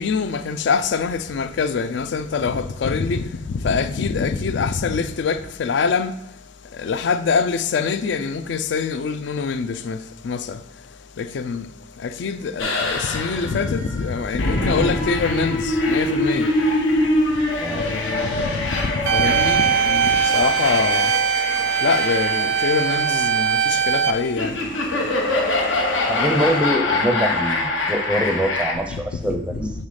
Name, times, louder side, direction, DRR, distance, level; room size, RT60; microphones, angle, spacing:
voice 1, 0.0-6.1 6.8-10.0 10.2-10.6 11.2-11.7 12.0-16.5 17.8-21.1 21.8-24.6 29.6-29.7, left 5 dB, 65° left, 0.4 m, -24 dB
sound 1, 12.6-28.7, left 2 dB, 85° left, 0.9 m, -24 dB
sound 2, 19.1-24.1, right 7 dB, 80° right, 0.5 m, -20 dB
voice 2, 26.1-29.7, equal, 5° right, 0.5 m, -24 dB
5.6 x 4.0 x 4.8 m
head